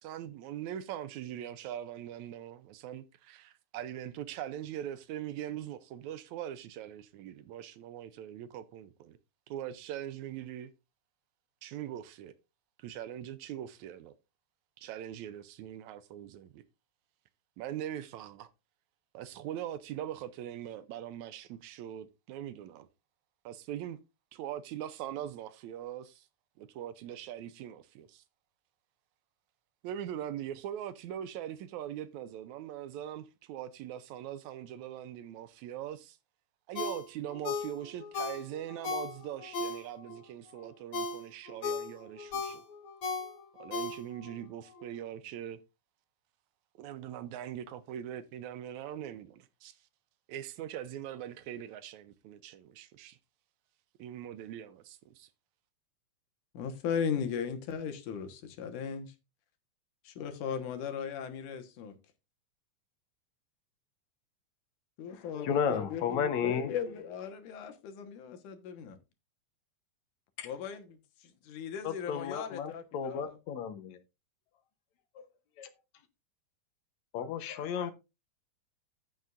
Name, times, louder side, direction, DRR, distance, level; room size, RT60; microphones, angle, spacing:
voice 1, 0.0-9.2 9.5-10.7 11.6-12.3 12.8-14.1 14.8-16.6 17.6-18.5 19.1-22.9 23.5-24.0 24.3-26.3 26.6-28.2 29.8-36.2 36.7-42.6 43.6-45.6 46.8-49.8 50.3-53.2 54.0-55.3, right 11 dB, 80° right, 1.9 m, -41 dB
Ringtone, 36.7-40.2 40.6-44.4 44.8-44.9, left 3 dB, 50° left, 1.9 m, -37 dB
voice 2, 56.5-59.1 60.0-62.0 65.0-69.0 70.4-73.4, left 7 dB, 85° left, 2.8 m, -37 dB
voice 3, 65.1-66.7 70.4-70.5 71.8-74.0 75.2-75.3 75.6-75.7 77.1-77.9, left 7 dB, 70° left, 2.2 m, -33 dB
15.0 x 6.4 x 2.5 m
omnidirectional pair, 3.5 m